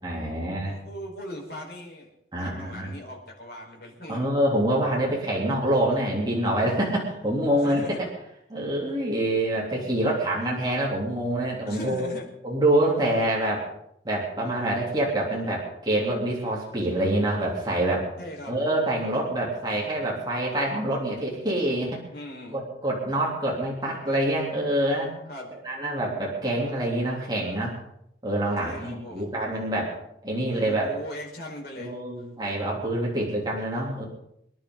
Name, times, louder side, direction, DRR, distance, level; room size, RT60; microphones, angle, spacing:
voice 1, 0.0-0.8 2.3-2.9 4.1-7.8 8.5-12.1 12.4-13.7 14.0-18.1 18.5-22.0 22.5-25.1 25.6-27.7 28.2-30.0 30.2-30.9 31.8-34.1, right 1 dB, 25° right, -4 dB, 3.4 m, -26 dB
voice 2, 0.6-2.1 2.4-4.3 7.6-8.0 11.6-12.3 18.2-18.5 22.1-22.6 25.3-25.5 28.6-29.3 30.4-32.0, left 1 dB, 55° left, -1 dB, 5.0 m, -39 dB
25.5 x 11.0 x 4.0 m, 0.77 s
head